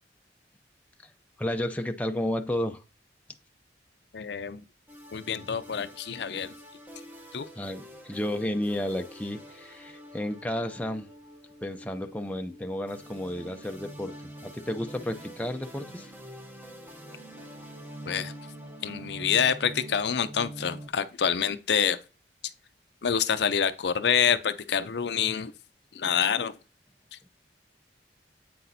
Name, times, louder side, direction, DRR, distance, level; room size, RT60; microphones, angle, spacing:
voice 1, 1.4-2.8 7.6-11.1 11.6-14.2 14.4-16.1 18.1-18.2, left 1 dB, 10° left, 0.5 m, -32 dB
voice 2, 4.1-4.6 5.1-6.5 7.3-7.5 18.1-18.3 18.8-22.0 23.0-25.5 25.9-26.5 27.1-27.2, left 7 dB, 75° left, 0.5 m, -27 dB
sound 1, 4.9-20.9, right 1 dB, 10° right, 0.9 m, -45 dB
8.5 x 5.8 x 2.7 m
head